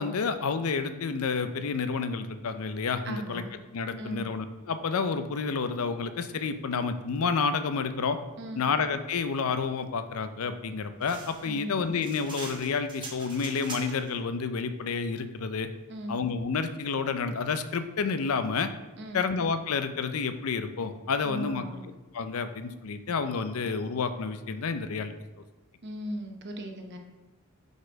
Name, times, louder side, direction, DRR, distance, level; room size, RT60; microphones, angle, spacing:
voice 1, 0.0-3.4 3.7-8.2 8.6-15.7 16.1-18.7 19.1-21.6 22.1-25.1, left 5 dB, 90° left, 10 dB, 0.5 m, -30 dB
voice 2, 3.0-3.5 4.0-4.3 8.4-8.6 11.4-11.8 15.9-16.1 19.0-19.2 21.2-21.8 25.8-27.0, equal, 55° right, 3 dB, 0.9 m, -37 dB
sound 1, 11.0-14.1, right 3 dB, 20° right, 0.9 m, -42 dB
5.0 x 4.1 x 5.0 m, 1.2 s
head